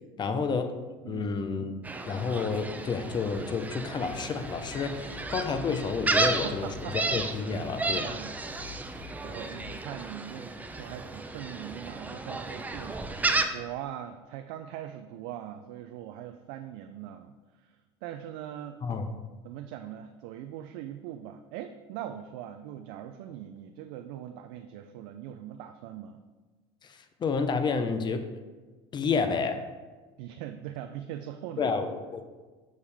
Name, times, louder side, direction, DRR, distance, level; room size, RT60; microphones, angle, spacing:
voice 1, 0.2-0.8 1.1-6.7 7.1-8.1 18.8-19.1 26.9-28.3 28.9-29.6 31.6-32.2, left 5 dB, 35° left, 8 dB, 0.7 m, -30 dB
Gull seagull, 1.8-13.5, right 3 dB, 10° right, 0.5 m, -33 dB
sound 1, 4.0-9.8, left 4 dB, 55° left, 1.3 m, -48 dB
voice 2, 6.2-7.0 7.5-7.6 8.0-8.5 8.9-17.3 17.6-18.8 19.4-26.2 30.2-31.7, right 11 dB, 75° right, 7 dB, 0.4 m, -41 dB
6.4 x 5.5 x 3.4 m, 1.3 s
supercardioid pair, 95°, 14 cm